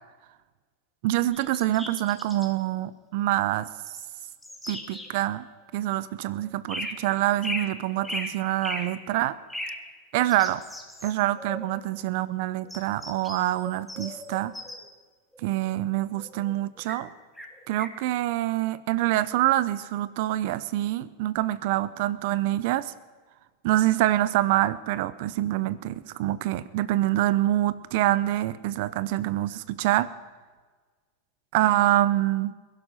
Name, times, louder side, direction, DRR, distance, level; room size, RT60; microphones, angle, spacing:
voice 1, 1.0-3.7 4.7-5.5 5.7-9.4 10.1-10.6 11.0-14.5 15.4-17.1 17.7-22.9 23.6-30.1 31.5-32.5, right 15 dB, 65° right, 17 dB, 0.9 m, -26 dB
sound 1, 1.3-2.5 3.9-5.1 6.7-7.0 7.4-8.9 9.5-9.8 10.3-11.7 12.7-14.9 15.3-17.0 17.3-18.0, left 1 dB, 5° left, 2.6 m, -37 dB
21.5 x 11.5 x 5.8 m, 1.4 s
hypercardioid pair, 105°, 0 cm